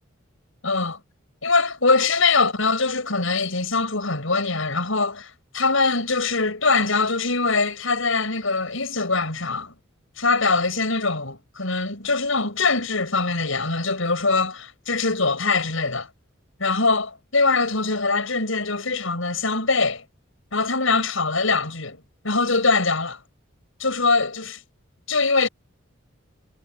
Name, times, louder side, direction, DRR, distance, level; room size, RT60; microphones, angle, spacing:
voice 1, 0.6-1.0 1.4-9.7 10.2-16.1 16.6-20.0 20.5-22.0 22.2-23.2 23.8-24.6 25.1-25.5, left 3 dB, 80° left, 6.1 m, -22 dB
head